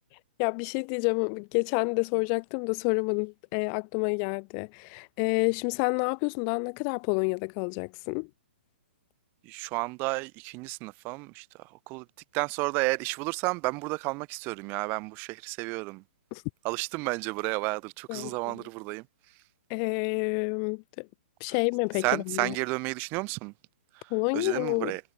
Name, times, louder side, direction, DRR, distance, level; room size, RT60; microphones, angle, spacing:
voice 1, 0.4-8.3 16.3-16.4 18.1-18.6 19.7-21.1 21.4-22.6 24.1-24.9, left 40 dB or more, 35° left, 0.6 m, -29 dB
voice 2, 9.4-12.0 12.3-16.0 16.6-19.0 22.0-23.5 24.0-25.0, right 26 dB, 35° right, 4.5 m, -32 dB
figure-of-eight pair, 120°, 6 cm